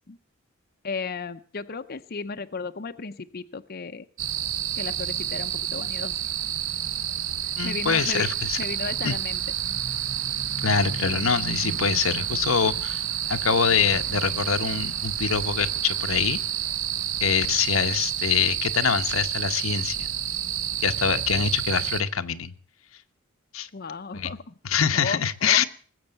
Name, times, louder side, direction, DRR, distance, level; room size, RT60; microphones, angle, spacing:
voice 1, 0.8-4.1 4.8-6.1 7.4-8.3 8.6-9.4 23.7-24.5 24.9-25.6, left 4 dB, 50° left, 9 dB, 0.7 m, -34 dB
sound 1, 4.2-22.0, right 10 dB, 70° right, 0.9 m, -29 dB
voice 2, 7.6-8.6 9.0-9.1 10.6-13.0 13.3-16.4 17.2-20.1 20.8-22.5 23.5-23.7 24.1-24.3 24.6-25.6, left 6 dB, 85° left, 9 dB, 1.0 m, -24 dB
19.5 x 8.0 x 7.8 m, 0.43 s
head